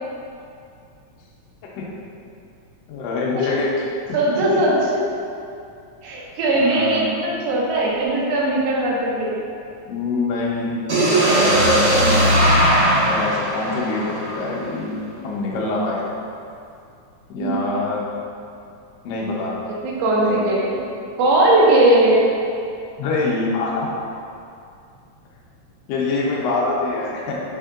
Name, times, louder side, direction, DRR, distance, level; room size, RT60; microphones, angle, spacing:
voice 1, 2.9-3.7 4.4-4.6 6.5-7.1 9.9-12.1 13.0-16.0 17.3-18.1 19.0-19.6 20.2-20.5 23.0-23.9 25.9-27.4, left 3 dB, 80° left, -4 dB, 1.6 m, -25 dB
voice 2, 4.1-5.0 6.0-9.4 17.4-17.6 19.8-20.9 21.2-22.2, right 1 dB, 80° right, -4 dB, 1.4 m, -19 dB
sound 1, 10.9-14.8, right 1 dB, 65° right, 0.9 m, -18 dB
4.4 x 3.5 x 2.3 m, 2.5 s
omnidirectional pair, 3.5 m